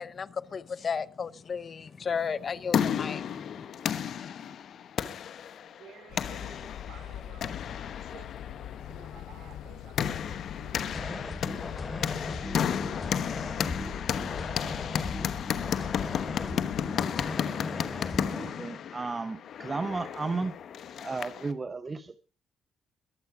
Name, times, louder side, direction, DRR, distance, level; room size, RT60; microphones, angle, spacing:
voice 1, 0.0-3.5, left 6 dB, 45° left, 18 dB, 0.7 m, -34 dB
sound 1, 2.3-21.5, left 8 dB, 65° left, 1.1 m, -33 dB
voice 2, 5.6-11.4, right 6 dB, 65° right, 7 dB, 5.3 m, -53 dB
sound 2, 6.1-16.9, left 11 dB, 80° left, 0.7 m, -43 dB
sound 3, 10.9-18.5, left 2 dB, 25° left, 3.2 m, -37 dB
voice 3, 18.3-20.5 21.0-22.2, right 3 dB, 30° right, 11 dB, 0.8 m, -34 dB
22.0 x 8.2 x 4.8 m, 0.35 s
cardioid pair, 90°, 0 cm